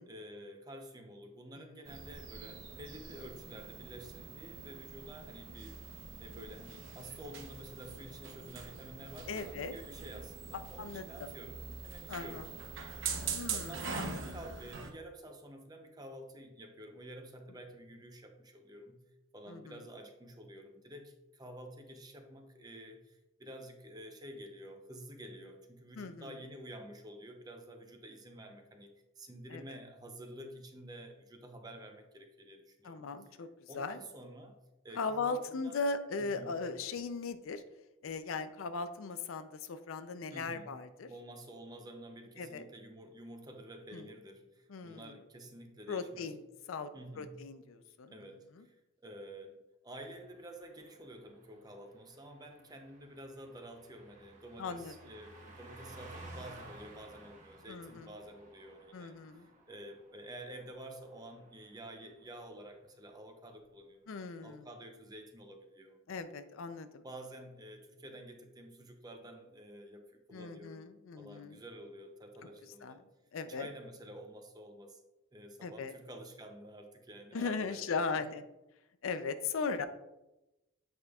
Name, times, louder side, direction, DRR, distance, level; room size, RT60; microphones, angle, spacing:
voice 1, 0.0-11.6 11.8-12.7 13.5-19.1 19.3-33.4 33.7-34.6 34.8-35.8 36.2-36.6 40.3-40.8 41.1-46.3 46.9-47.4 48.1-64.1 64.4-66.0 67.0-73.0 73.5-75.0 75.3-78.2, right 1 dB, 20° right, 5 dB, 0.6 m, -50 dB
sound 1, 1.8-14.9, right 5 dB, 75° right, 0.7 m, -43 dB
voice 2, 9.3-9.7 10.5-11.3 12.1-12.5 13.3-14.2 19.5-19.8 26.0-26.4 29.5-29.8 32.8-33.5 33.7-34.0 34.9-37.6 38.0-41.1 42.4-42.6 43.9-44.1 44.7-45.2 45.9-46.4 46.7-46.9 47.2-48.1 48.6-48.7 54.6-54.9 57.7-58.1 58.9-59.5 64.1-64.7 66.1-67.0 70.3-71.6 72.8-73.0 73.3-73.7 75.6-75.9 77.3-78.4 79.0-79.9, left 4 dB, 85° left, 10 dB, 0.5 m, -38 dB
Car passing by, 50.1-62.0 62.3-62.5, right 2 dB, 35° right, 0.9 m, -55 dB
8.0 x 5.0 x 2.4 m, 0.98 s
head